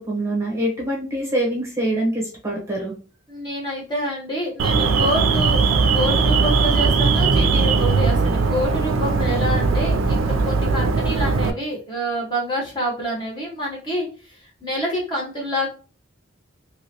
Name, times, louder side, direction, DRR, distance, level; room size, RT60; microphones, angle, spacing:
voice 1, 0.0-2.9, right 1 dB, 15° right, -4 dB, 0.9 m, -24 dB
voice 2, 3.3-15.7, equal, 20° left, -3 dB, 1.0 m, -27 dB
Alarm, 4.6-11.5, right 4 dB, 75° right, 0.4 m, -19 dB
3.0 x 2.9 x 2.8 m, 0.36 s
head